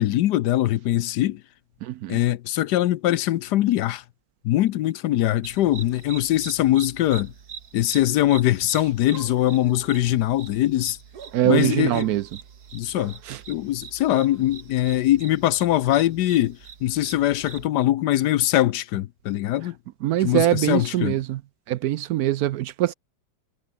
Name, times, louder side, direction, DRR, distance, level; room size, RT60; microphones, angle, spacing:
voice 1, 0.0-1.4 2.1-4.0 4.4-7.3 7.7-11.0 11.4-12.2 12.7-13.2 13.5-19.7 20.2-21.2, left 14 dB, 70° left, 1.1 m, -22 dB
voice 2, 1.8-2.2 11.3-12.3 13.3-13.4 20.0-21.4 21.7-22.9, right 13 dB, 75° right, 0.9 m, -23 dB
sound 1, 5.4-17.7, right 7 dB, 55° right, 2.0 m, -42 dB
omnidirectional pair, 2.1 m